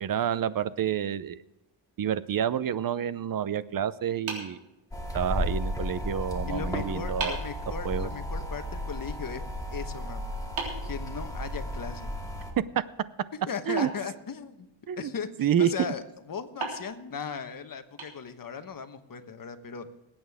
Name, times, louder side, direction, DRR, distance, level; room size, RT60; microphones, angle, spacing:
voice 1, 0.0-1.4 2.0-4.6 5.1-7.4 7.8-8.1 12.6-12.8 13.7-13.9 14.9-15.1 15.4-15.7, right 9 dB, 45° right, 16 dB, 0.7 m, -28 dB
sound 1, 4.3-5.4 6.6-6.7 7.2-7.6 10.6-11.8 13.8-14.8 16.6-18.7, right 4 dB, 85° right, 3.7 m, -39 dB
sound 2, 4.9-12.5, left 1 dB, 5° left, 2.3 m, -34 dB
voice 2, 6.5-9.4 9.7-10.2 10.9-12.1 13.5-14.7 15.0-19.9, left 6 dB, 45° left, 8 dB, 1.2 m, -37 dB
21.0 x 9.0 x 3.6 m, 0.92 s
cardioid pair, 110°, 47 cm